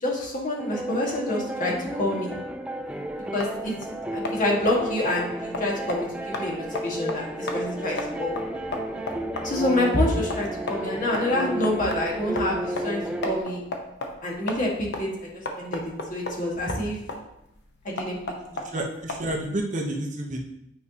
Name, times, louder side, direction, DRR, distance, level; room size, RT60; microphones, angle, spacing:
voice 1, 0.0-2.3 3.2-3.7 4.1-8.4 9.4-13.6 14.2-17.0 17.8-18.2 18.5-18.8, left 1 dB, 45° left, -3 dB, 1.6 m, -27 dB
sound 1, 0.6-13.4, right 1 dB, 5° right, 0.4 m, -32 dB
sound 2, 2.8-19.6, left 2 dB, 65° left, 0.9 m, -36 dB
voice 2, 18.7-20.4, right 1 dB, 40° right, 1 dB, 0.9 m, -29 dB
9.0 x 4.8 x 2.8 m, 0.79 s
head